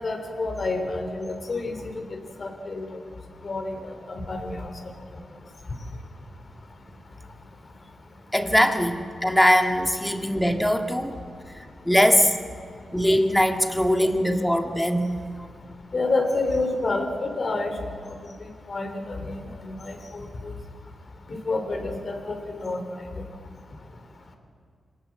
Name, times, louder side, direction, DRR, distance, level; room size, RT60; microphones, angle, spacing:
voice 1, 0.0-3.0 3.4-4.7 15.9-20.5 21.3-23.1, left 2 dB, 45° left, 6 dB, 3.4 m, -29 dB
voice 2, 8.3-11.2 11.5-12.4 12.9-15.5, equal, 5° left, 5 dB, 1.8 m, -22 dB
26.0 x 18.5 x 7.6 m, 2.3 s
wide cardioid pair, 100°, 0 cm